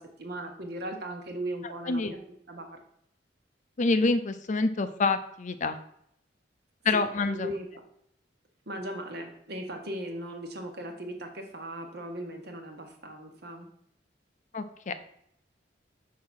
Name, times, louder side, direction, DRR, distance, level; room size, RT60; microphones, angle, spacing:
voice 1, 0.0-2.2 2.5-2.8 6.9-7.0 7.3-7.7 8.7-13.7, right 1 dB, 60° right, 4 dB, 1.3 m, -38 dB
voice 2, 3.8-5.8 6.8-7.5 14.5-14.9, left 3 dB, 45° left, 10 dB, 0.5 m, -27 dB
5.7 x 4.2 x 6.2 m, 0.72 s
head